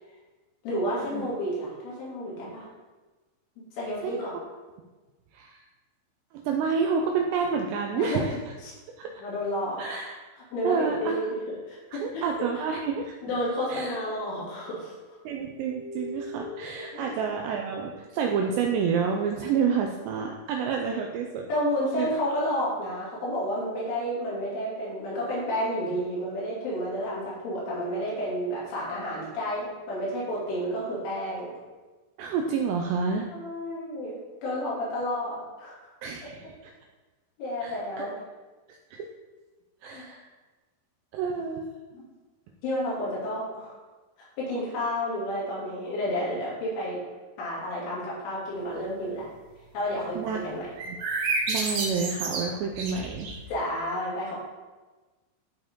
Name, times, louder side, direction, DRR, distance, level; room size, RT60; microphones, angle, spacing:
voice 1, 0.6-2.7 3.8-4.3 7.9-8.2 8.6-8.7 9.2-10.0 10.5-11.3 11.7-12.2 13.2-15.2 16.9-17.1 21.5-31.5 33.3-35.8 37.4-38.2 39.9-40.0 41.9-42.1 42.6-43.7 44.4-47.0 47.4-49.3 49.7-50.2 50.4-50.7 53.5-54.4, equal, 80° left, -7 dB, 5.2 m, -31 dB
voice 2, 6.3-8.4 9.0-9.1 9.8-10.1 10.6-11.2 11.9-13.1 13.7-13.9 15.3-21.5 21.9-22.1 32.2-33.3 36.0-36.7 37.6-38.1 38.9-39.1 39.8-40.3 41.1-41.7 50.1-50.4 50.9-51.0 51.5-53.4, right 6 dB, 85° right, 2 dB, 2.5 m, -29 dB
sound 1, 14.5-14.9 15.2-18.3, left 2 dB, 15° left, 1.6 m, -43 dB
sound 2, 50.8-53.5, right 3 dB, 65° right, 2.3 m, -30 dB
13.5 x 4.7 x 3.7 m, 1.3 s
omnidirectional pair, 5.6 m